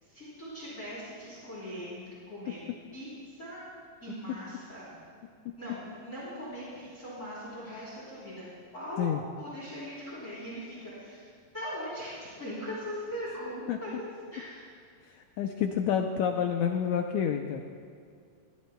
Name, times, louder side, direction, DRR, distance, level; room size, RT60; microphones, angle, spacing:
voice 1, 0.0-2.6 2.9-3.6 4.0-4.9 5.5-8.5 8.7-9.1 9.4-11.3 11.5-14.0 14.3-14.7, equal, 20° left, -8 dB, 3.5 m, -40 dB
voice 2, 15.1-17.7, left 8 dB, 80° left, 4 dB, 1.8 m, -29 dB
22.0 x 15.5 x 2.2 m, 2.2 s
omnidirectional pair, 3.8 m